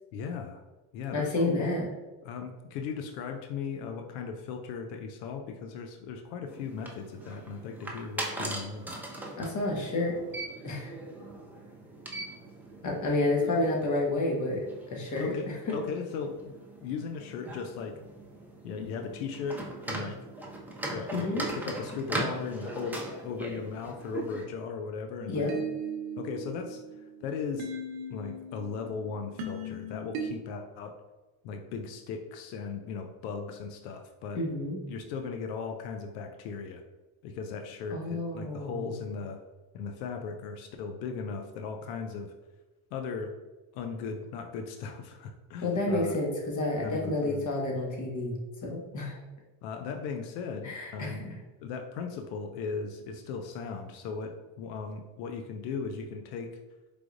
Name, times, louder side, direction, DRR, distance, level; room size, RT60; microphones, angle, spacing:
voice 1, 0.1-0.6 0.9-1.7 2.2-9.0 15.2-16.5 16.8-17.9 18.6-20.2 20.9-25.5 26.2-26.8 27.2-27.7 28.1-30.9 31.4-34.4 34.9-36.8 37.2-39.4 39.7-42.3 42.9-43.3 43.7-46.2 46.8-47.4 49.6-51.2 51.6-56.5, left 5 dB, 90° left, 5 dB, 0.6 m, -37 dB
voice 2, 1.1-1.9 9.4-10.2 10.6-10.9 12.8-15.7 21.1-21.5 25.3-25.5 34.3-34.8 37.9-39.0 45.6-49.2 50.6-51.3, left 2 dB, 35° left, -1 dB, 1.3 m, -30 dB
sound 1, 6.5-24.4, right 2 dB, 5° right, 0.7 m, -40 dB
sound 2, 25.2-30.3, right 2 dB, 65° right, 0.8 m, -38 dB
4.6 x 3.4 x 2.5 m, 1.2 s
supercardioid pair, 95°, 49 cm